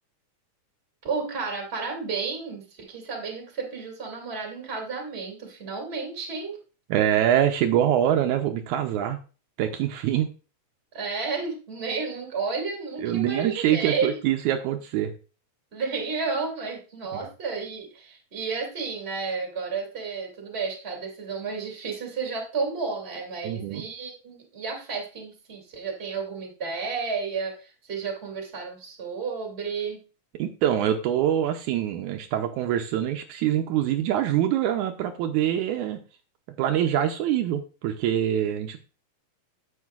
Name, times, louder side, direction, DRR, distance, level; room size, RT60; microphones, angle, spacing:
voice 1, 1.0-6.6 10.9-14.2 15.7-30.0, right 4 dB, 25° right, 1 dB, 2.0 m, -32 dB
voice 2, 6.9-9.2 9.6-10.3 13.0-15.1 17.1-17.3 23.4-23.8 30.4-36.0 36.6-38.8, right 11 dB, 80° right, 5 dB, 2.0 m, -24 dB
9.5 x 8.0 x 2.4 m, 0.35 s
omnidirectional pair, 3.6 m